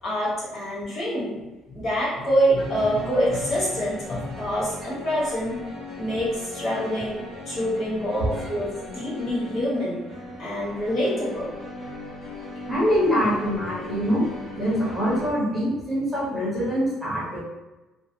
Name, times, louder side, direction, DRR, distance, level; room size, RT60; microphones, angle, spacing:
voice 1, 0.0-1.4 1.7-5.6 6.0-10.0 10.4-11.5, equal, 35° left, -7 dB, 1.0 m, -26 dB
sound 1, 2.5-15.3, left 2 dB, 65° left, 0.9 m, -38 dB
voice 2, 12.7-14.2 14.5-17.4, equal, 5° right, -9 dB, 0.7 m, -24 dB
2.3 x 2.2 x 2.6 m, 1.1 s
cardioid pair, 175°, 0 cm